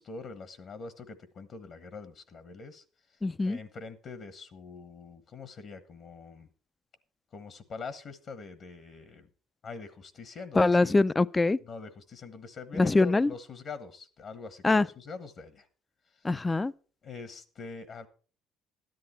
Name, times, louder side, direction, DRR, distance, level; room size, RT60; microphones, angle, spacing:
voice 1, 0.0-6.5 7.3-9.3 9.6-11.0 11.6-15.7 16.1-16.3 17.0-18.1, left 4 dB, 50° left, 1.3 m, -44 dB
voice 2, 3.2-3.6 10.6-11.6 12.8-13.3 14.6-14.9 16.2-16.7, left 3 dB, 20° left, 0.4 m, -23 dB
13.0 x 10.5 x 4.4 m
supercardioid pair, 80°, 0 cm